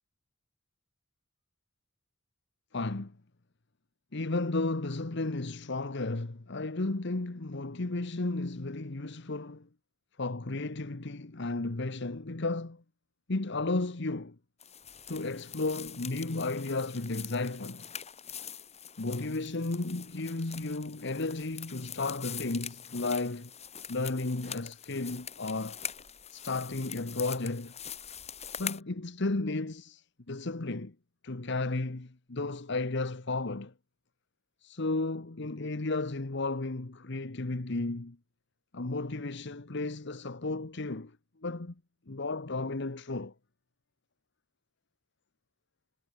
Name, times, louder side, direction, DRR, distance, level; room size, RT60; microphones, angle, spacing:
voice 1, 2.7-3.1 4.1-9.7 10.2-12.8 13.3-14.4 15.1-17.9 19.0-23.5 23.9-25.8 26.3-27.7 28.6-30.9 31.2-33.7 34.6-38.2 38.7-41.2 41.4-41.7 42.1-43.3, left 2 dB, 60° left, 1.2 m, -33 dB
sound 1, 14.6-28.8, left 8 dB, 35° left, 7.3 m, -43 dB
head